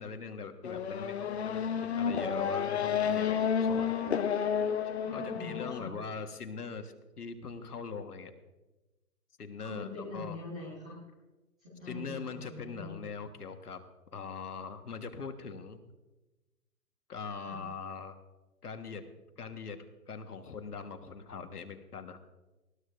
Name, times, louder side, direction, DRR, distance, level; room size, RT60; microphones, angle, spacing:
voice 1, 0.0-4.0 5.1-8.3 9.4-10.4 11.8-13.8 14.1-15.8 17.1-18.2 18.6-19.0 19.4-19.8 20.1-22.2, left 5 dB, 70° left, 7 dB, 1.6 m, -41 dB
Race car auto racing / Accelerating revving vroom, 0.6-5.8, left 7 dB, 45° left, 1.0 m, -31 dB
voice 2, 5.0-5.9 9.6-10.9 11.8-12.9 17.4-17.6, left 2 dB, 5° right, -8 dB, 0.6 m, -43 dB
20.0 x 14.5 x 2.6 m, 1.1 s
figure-of-eight pair, 145°, 48 cm